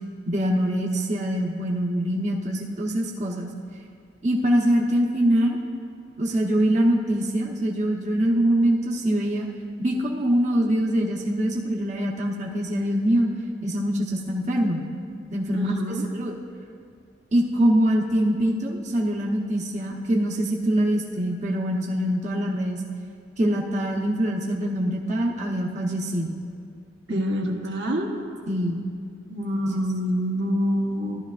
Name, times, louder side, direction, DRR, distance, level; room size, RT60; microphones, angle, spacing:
voice 1, 0.3-3.5 4.2-5.6 6.2-9.5 9.8-13.3 13.6-14.8 15.3-16.3 17.3-22.8 23.4-26.3 27.1-27.2 28.5-28.8 29.7-29.8, right 1 dB, 40° right, -2 dB, 0.9 m, -24 dB
voice 2, 15.5-16.0 27.1-28.1 29.3-31.2, equal, 80° right, 0 dB, 1.0 m, -26 dB
15.0 x 12.0 x 2.4 m, 2.3 s
head